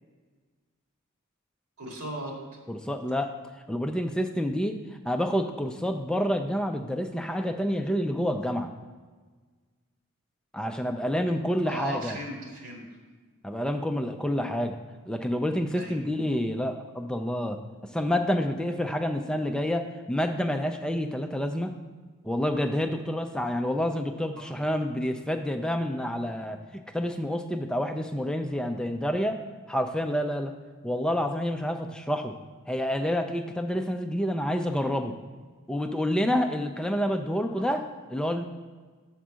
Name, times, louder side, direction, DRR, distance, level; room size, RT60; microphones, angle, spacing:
voice 1, 1.8-2.3 11.6-12.8 15.7-16.0 37.6-37.7, right 1 dB, 80° right, -1 dB, 2.2 m, -37 dB
voice 2, 2.7-3.3 3.7-4.8 5.1-8.7 10.5-12.2 13.4-14.8 15.1-17.6 17.9-21.7 22.2-29.4 29.7-30.5 30.8-32.3 32.7-35.2 35.7-37.8 38.1-38.4, equal, 5° left, 5 dB, 0.3 m, -28 dB
7.0 x 4.5 x 6.2 m, 1.4 s
head